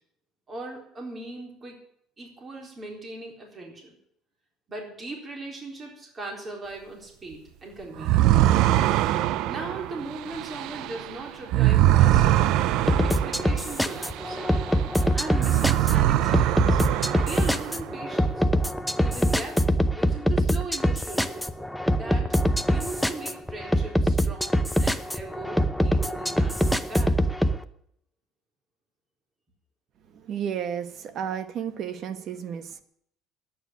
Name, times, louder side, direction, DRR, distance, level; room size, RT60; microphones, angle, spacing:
voice 1, 0.5-1.8 2.2-3.9 4.7-8.6 9.5-12.5 13.0-14.4 15.1-16.8 17.2-18.4 19.0-19.6 19.9-21.5 21.9-27.2, right 2 dB, 25° right, 0 dB, 4.0 m, -39 dB
sound 1, 8.0-14.9 15.3-17.9, right 13 dB, 65° right, 0.5 m, -23 dB
sound 2, 12.9-27.6, equal, ahead, 0.7 m, -24 dB
voice 2, 30.1-32.8, right 8 dB, 45° right, 10 dB, 1.4 m, -32 dB
11.0 x 9.1 x 9.6 m, 0.71 s
cardioid pair, 145°, 0 cm